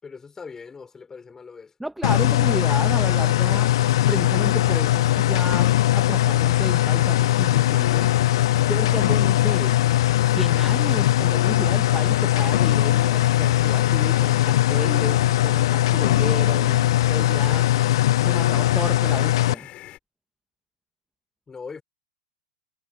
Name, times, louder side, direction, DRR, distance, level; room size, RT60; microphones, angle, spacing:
voice 1, 0.0-1.7 21.5-21.8, left 5 dB, 20° left, 4.0 m, -40 dB
voice 2, 1.8-3.7 4.1-8.1 8.5-9.8 10.3-17.7 18.2-19.7, right 1 dB, 5° right, 1.5 m, -32 dB
sound 1, 2.0-19.5, left 14 dB, 70° left, 0.4 m, -20 dB
sound 2, 3.5-20.0, left 15 dB, 40° left, 7.5 m, -43 dB
hypercardioid pair, 100°, 3 cm